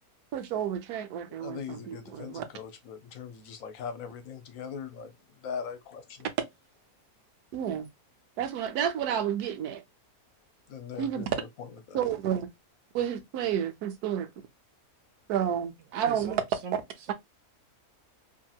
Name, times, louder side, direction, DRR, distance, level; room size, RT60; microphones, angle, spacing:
voice 1, 0.3-2.4 7.5-7.9 8.4-9.8 11.0-11.3 11.9-12.5 12.9-14.3 15.3-16.4, right 9 dB, 85° right, 1.2 m, -30 dB
voice 2, 1.3-6.3 10.7-12.0, left 6 dB, 65° left, 1.0 m, -41 dB
voice 3, 16.1-16.8 17.1-17.2, right 7 dB, 65° right, 0.9 m, -40 dB
2.9 x 2.8 x 2.2 m
omnidirectional pair, 1.6 m